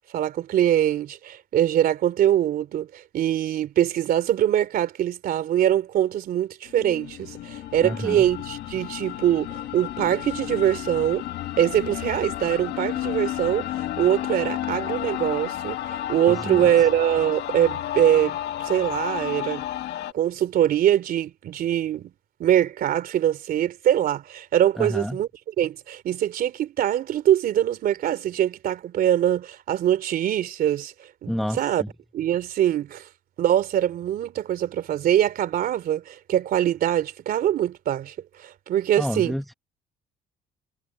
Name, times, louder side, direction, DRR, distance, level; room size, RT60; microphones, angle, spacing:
voice 1, 0.1-11.2 11.6-19.6 20.1-22.1 22.4-25.3 25.6-31.8 32.1-33.1 33.4-39.3, right 11 dB, 60° right, 2.9 m, -23 dB
sound 1, 6.7-20.1, left 13 dB, 75° left, 1.5 m, -32 dB
voice 2, 7.8-8.3 16.3-16.9 24.8-25.2 31.3-31.9 39.0-39.5, equal, ahead, 1.2 m, -30 dB
cardioid pair, 110°, 17 cm